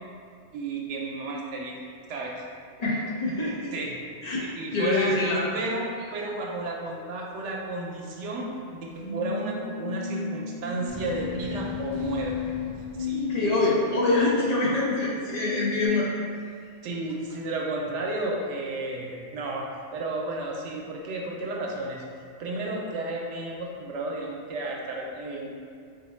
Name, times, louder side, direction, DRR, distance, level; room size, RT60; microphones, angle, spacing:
voice 1, 0.5-1.8 2.1-2.4 3.7-3.9 4.6-12.4 13.0-13.7 16.8-22.1 22.4-25.6, right 2 dB, 85° right, -1 dB, 0.9 m, -32 dB
voice 2, 2.8-3.6 4.2-5.5 13.3-16.1, left 2 dB, 40° left, -6 dB, 0.7 m, -25 dB
sound 1, 8.9-15.9, left 5 dB, 65° left, 1.7 m, -34 dB
sound 2, 10.9-14.3, equal, 40° right, 0.4 m, -42 dB
3.5 x 2.0 x 4.3 m, 2.2 s
omnidirectional pair, 1.2 m